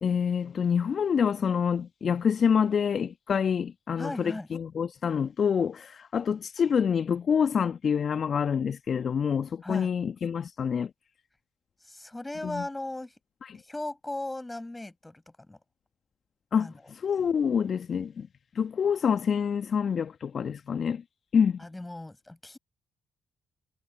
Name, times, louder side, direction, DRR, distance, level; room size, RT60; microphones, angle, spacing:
voice 1, 0.0-10.9 12.4-12.6 13.4-13.6 16.5-18.3 18.5-21.0 21.3-21.6, left 7 dB, 50° left, 1.2 m, -27 dB
voice 2, 4.0-4.5 9.6-9.9 11.8-13.1 13.6-15.6 16.6-16.7 21.6-22.6, left 2 dB, 15° left, 7.7 m, -37 dB
figure-of-eight pair, 40°, 0 cm